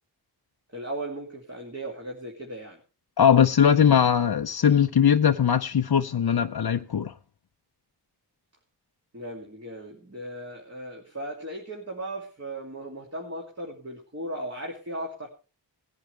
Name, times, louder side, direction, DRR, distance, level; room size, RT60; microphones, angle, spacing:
voice 1, 0.7-2.8 9.1-15.3, right 1 dB, 35° right, 2.7 m, -37 dB
voice 2, 3.2-7.1, left 8 dB, 65° left, 0.6 m, -20 dB
19.5 x 10.5 x 3.3 m
wide cardioid pair, 70°, 40 cm